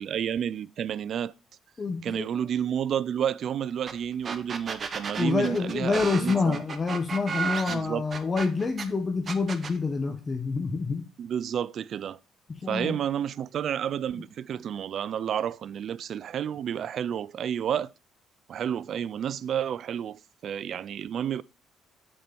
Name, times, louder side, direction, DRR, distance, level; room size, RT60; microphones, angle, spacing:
voice 1, 0.0-1.3 2.0-6.6 7.7-8.1 11.2-12.2 12.7-17.9 18.5-21.4, right 9 dB, 60° right, 0.3 m, -30 dB
voice 2, 1.8-2.3 5.2-11.0 12.5-13.0, left 4 dB, 30° left, 0.9 m, -27 dB
sound 1, 3.9-4.0 4.2-8.9 9.3-9.8, right 5 dB, 40° right, 0.9 m, -33 dB
7.5 x 4.3 x 5.3 m
cardioid pair, 90°, 0 cm